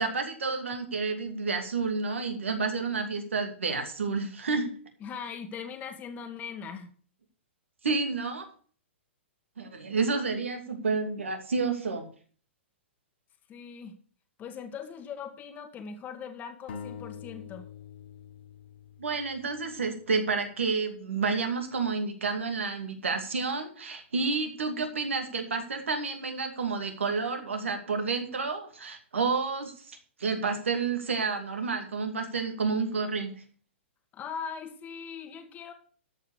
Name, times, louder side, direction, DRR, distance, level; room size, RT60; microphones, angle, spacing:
voice 1, 0.0-4.7 7.8-8.5 9.6-12.1 19.0-33.3, right 4 dB, 80° right, 6 dB, 2.5 m, -30 dB
voice 2, 5.0-6.9 13.5-13.9 14.4-17.6 34.1-35.7, left 6 dB, 25° left, 6 dB, 1.6 m, -40 dB
sound 1, 16.7-20.3, left 7 dB, 60° left, 1.5 m, -45 dB
13.0 x 5.7 x 6.9 m, 0.44 s
hypercardioid pair, 120°, 7 cm